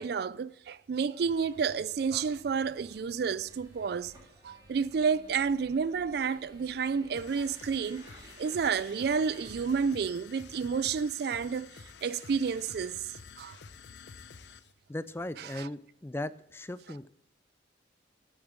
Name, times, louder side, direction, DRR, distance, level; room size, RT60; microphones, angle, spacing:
voice 1, 0.0-4.1 4.4-8.0 8.4-11.7 12.0-13.1 13.4-13.6 15.4-15.7, right 6 dB, 60° right, 0.4 m, -30 dB
sound 1, 1.2-9.9, right 1 dB, 20° right, 2.9 m, -56 dB
sound 2, 7.1-14.7, left 5 dB, 70° left, 0.7 m, -50 dB
voice 2, 14.9-17.1, left 1 dB, 15° left, 0.4 m, -38 dB
8.8 x 7.0 x 8.7 m
head